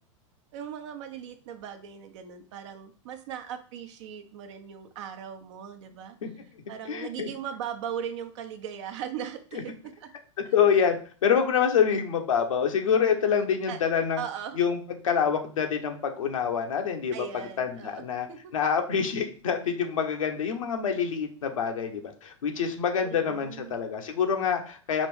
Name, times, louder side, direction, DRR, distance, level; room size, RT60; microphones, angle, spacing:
voice 1, 0.5-6.2 6.7-10.1 10.4-10.5 13.7-13.8 14.2-14.6 17.1-18.5 23.0-23.9, right 8 dB, 65° right, 7 dB, 0.8 m, -38 dB
voice 2, 6.9-7.3 10.5-11.0 11.2-14.2 14.6-14.8 15.0-17.2 17.6-18.3 18.5-25.1, left 7 dB, 85° left, 4 dB, 0.9 m, -26 dB
5.1 x 2.6 x 3.4 m, 0.40 s
hypercardioid pair, 110°, 17 cm